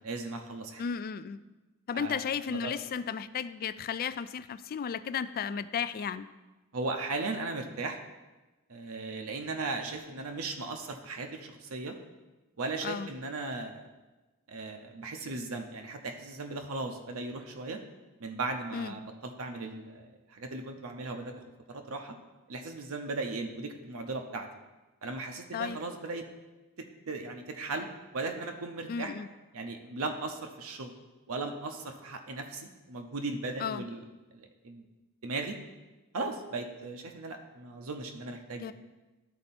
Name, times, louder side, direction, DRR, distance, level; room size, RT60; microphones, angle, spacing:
voice 1, 0.0-0.8 1.9-2.7 6.7-8.0 8.7-11.9 12.6-13.9 14.5-17.8 18.2-21.3 21.7-22.2 22.5-24.5 25.0-26.2 27.1-27.9 28.1-29.1 29.5-30.9 31.3-34.0 34.3-34.9 35.2-35.6 36.1-38.7, right 3 dB, 70° right, 4 dB, 0.7 m, -37 dB
voice 2, 0.8-1.4 1.9-6.3 12.8-13.1 18.7-19.0 25.5-25.8 28.9-29.3 33.6-33.8 38.6-38.7, left 7 dB, 45° left, 14 dB, 0.3 m, -34 dB
11.5 x 4.4 x 4.2 m, 1.1 s
head